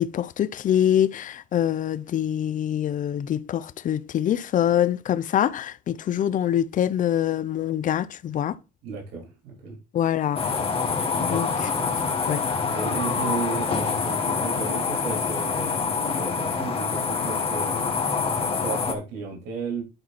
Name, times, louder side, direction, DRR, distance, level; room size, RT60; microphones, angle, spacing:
voice 1, 0.0-8.6 9.9-10.4 11.2-11.5 11.8-12.4, left 10 dB, 50° left, 0.7 m, -25 dB
voice 2, 8.8-9.8 11.1-11.9 12.7-17.9 18.3-19.8, right 4 dB, 90° right, 3.9 m, -34 dB
sound 1, 10.4-18.9, left 5 dB, 35° left, 2.0 m, -26 dB
10.5 x 4.6 x 4.2 m
cardioid pair, 110°, 17 cm